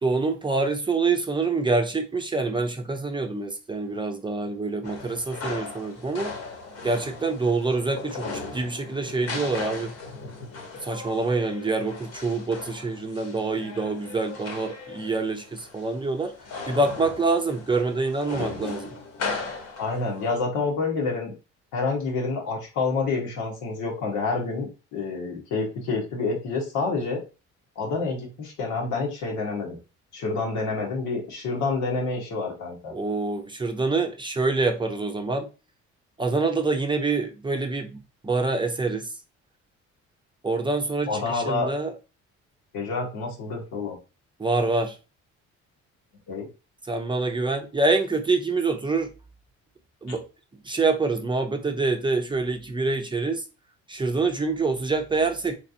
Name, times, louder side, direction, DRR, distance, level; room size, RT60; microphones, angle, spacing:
voice 1, 0.0-6.3 6.8-9.9 10.8-16.3 16.7-18.9 32.9-35.5 36.2-39.1 40.4-41.9 44.4-45.0 46.9-49.1 50.0-50.2 50.6-53.4 53.9-55.5, right 3 dB, 15° right, 0.6 m, -26 dB
sound 1, 4.8-20.4, left 4 dB, 55° left, 1.2 m, -38 dB
voice 2, 19.8-21.3 21.7-27.2 27.7-29.8 30.1-32.9 41.1-41.7 42.7-44.0 46.3-46.5, left 3 dB, 85° left, 1.5 m, -28 dB
3.9 x 3.3 x 2.7 m
cardioid pair, 100°, 29 cm